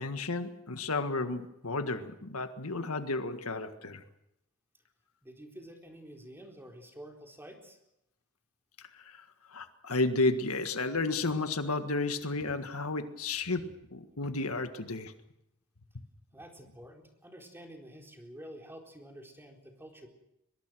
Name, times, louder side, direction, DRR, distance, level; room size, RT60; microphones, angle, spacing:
voice 1, 0.0-4.0 8.8-15.1 15.9-16.0, left 3 dB, 80° left, 8 dB, 1.7 m, -32 dB
voice 2, 5.2-7.8 16.3-20.1, equal, 10° right, 2 dB, 4.1 m, -49 dB
23.5 x 21.5 x 6.3 m, 0.82 s
head